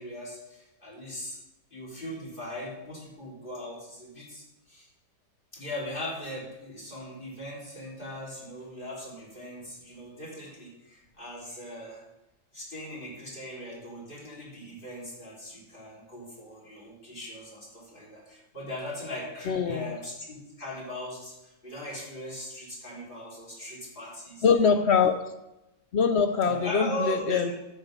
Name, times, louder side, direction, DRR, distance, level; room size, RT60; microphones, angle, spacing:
voice 1, 0.0-1.4 1.7-4.9 5.5-12.0 12.5-24.5 26.4-27.5, left 1 dB, 30° left, -4 dB, 3.6 m, -39 dB
voice 2, 19.5-19.9 24.4-25.3 25.9-27.5, left 6 dB, 70° left, 9 dB, 0.6 m, -23 dB
11.0 x 7.5 x 5.3 m, 0.95 s
omnidirectional pair, 1.8 m